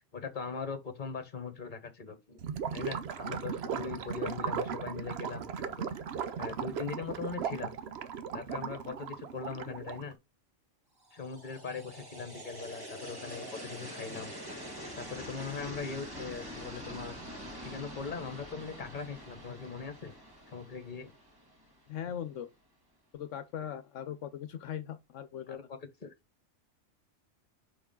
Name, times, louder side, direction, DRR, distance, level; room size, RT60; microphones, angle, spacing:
voice 1, 0.1-2.4 2.7-5.8 6.4-7.7 8.3-10.2 11.1-14.3 14.9-17.2 17.6-20.1 20.5-21.1 25.5-26.1, left 5 dB, 40° left, 1.5 m, -40 dB
Gurgling / Liquid, 2.4-10.1, right 7 dB, 60° right, 0.9 m, -37 dB
sound 1, 11.0-22.1, equal, 20° right, 1.9 m, -45 dB
voice 2, 21.9-22.5 23.1-25.7, left 9 dB, 80° left, 1.0 m, -40 dB
5.3 x 4.7 x 3.7 m
omnidirectional pair, 1.3 m